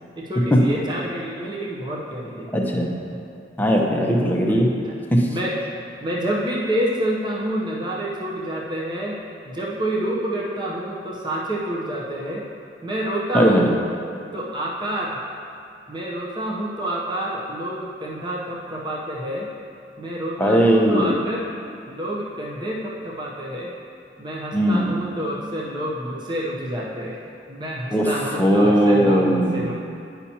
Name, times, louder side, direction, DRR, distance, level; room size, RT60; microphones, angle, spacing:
voice 1, 0.2-2.5 3.9-4.0 4.8-5.0 5.3-5.6 6.0-9.2 9.4-12.4 12.8-13.7 14.3-15.2 15.9-19.5 20.0-21.5 21.9-23.7 24.2-27.2 27.5-29.7, right 1 dB, 25° right, -4 dB, 0.7 m, -28 dB
voice 2, 2.5-3.0 3.6-4.7 5.1-5.3 13.3-13.7 20.4-21.2 24.5-24.9 27.9-29.7, equal, 10° left, -1 dB, 0.7 m, -18 dB
9.7 x 5.6 x 2.8 m, 2.5 s
head